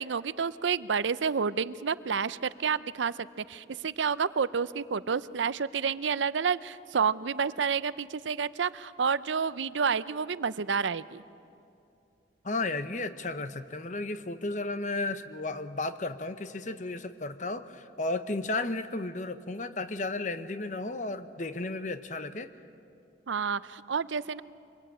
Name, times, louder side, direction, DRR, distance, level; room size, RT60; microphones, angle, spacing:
voice 1, 0.0-11.2 23.3-24.4, right 6 dB, 90° right, 16 dB, 0.6 m, -29 dB
voice 2, 12.4-22.5, left 2 dB, 40° left, 11 dB, 0.9 m, -33 dB
25.0 x 21.0 x 8.9 m, 2.6 s
head